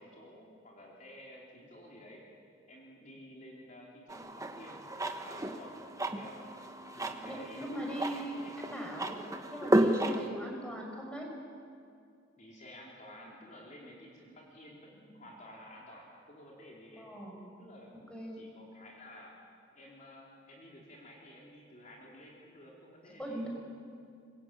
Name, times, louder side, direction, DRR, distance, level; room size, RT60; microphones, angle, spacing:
voice 1, 0.0-2.2 2.7-4.8 5.1-5.8 6.1-6.4 7.0-8.7 10.4-10.6 12.4-17.1 17.6-17.9 18.3-19.3 19.7-23.5, left 1 dB, 40° left, -3 dB, 3.8 m, -52 dB
sound 1, 4.1-10.3, right 1 dB, 15° right, 1.2 m, -33 dB
voice 2, 7.3-9.2 9.5-11.3 17.0-17.4 18.1-18.4 23.2-23.5, right 1 dB, 5° left, 0 dB, 5.5 m, -40 dB
24.5 x 22.0 x 9.0 m, 2.4 s
head